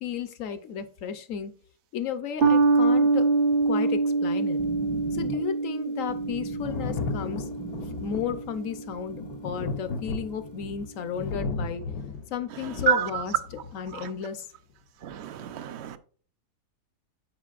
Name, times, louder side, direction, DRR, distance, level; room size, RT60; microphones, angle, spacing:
voice 1, 0.0-1.5 1.9-3.3 3.7-4.6 5.1-7.5 8.0-11.8 12.3-13.3 13.7-14.5, left 7 dB, 60° left, 1.0 m, -33 dB
sound 1, 2.4-9.1, right 3 dB, 40° right, 0.9 m, -25 dB
sound 2, 4.1-9.4, right 3 dB, 90° right, 1.8 m, -41 dB
Thunder, 6.6-14.0 15.1-15.2, left 4 dB, 75° left, 1.3 m, -35 dB
voice 2, 15.0-16.0, right 8 dB, 60° right, 0.7 m, -27 dB
13.5 x 4.9 x 2.4 m
omnidirectional pair, 1.7 m